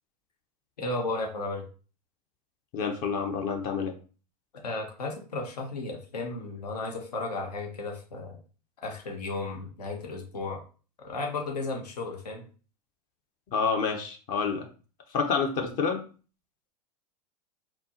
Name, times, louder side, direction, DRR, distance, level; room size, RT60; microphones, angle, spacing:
voice 1, 0.8-1.7 4.6-8.4 8.8-10.6 11.0-12.4, left 2 dB, 70° left, 1 dB, 1.2 m, -34 dB
voice 2, 2.7-3.9 13.5-14.7 15.1-16.0, left 5 dB, 40° left, 4 dB, 0.9 m, -28 dB
4.4 x 2.9 x 2.9 m, 0.37 s
figure-of-eight pair, 90°, 21 cm